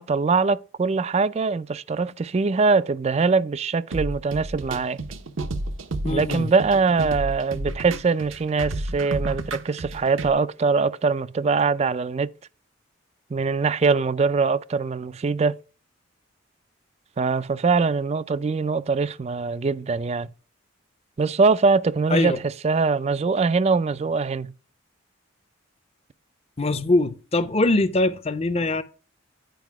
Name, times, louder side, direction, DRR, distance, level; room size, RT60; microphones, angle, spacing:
voice 1, 0.0-5.0 6.1-12.3 13.3-15.6 17.2-20.3 21.2-24.5, right 4 dB, 30° right, 0.3 m, -22 dB
sound 1, 3.9-10.3, right 2 dB, 75° right, 0.8 m, -31 dB
voice 2, 6.0-6.5 22.1-22.4 26.6-28.8, left 2 dB, 30° left, 0.6 m, -22 dB
9.2 x 4.9 x 4.6 m
head